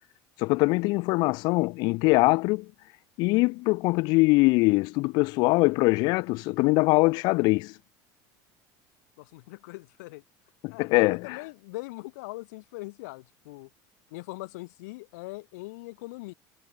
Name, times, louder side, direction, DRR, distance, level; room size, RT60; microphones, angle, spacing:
voice 1, 0.4-2.7 3.2-7.7 10.6-11.2, left 25 dB, 55° left, 1.2 m, -22 dB
voice 2, 9.2-10.2 10.7-13.7 14.1-16.3, left 23 dB, 85° left, 5.9 m, -41 dB
cardioid pair, 170°, 9 cm